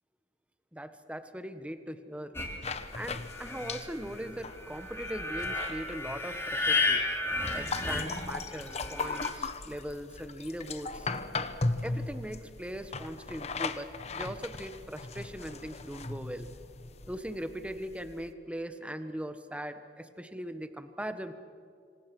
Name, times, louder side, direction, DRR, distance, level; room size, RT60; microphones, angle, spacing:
voice 1, 0.7-2.3 2.9-7.0 7.5-11.1 11.8-16.5 17.1-21.3, equal, 5° right, 9 dB, 1.3 m, -40 dB
sound 1, 2.3-9.3, left 3 dB, 15° left, 2.9 m, -33 dB
sound 2, 2.6-18.3, left 3 dB, 35° left, 1.1 m, -38 dB
26.0 x 26.0 x 6.2 m, 2.3 s
head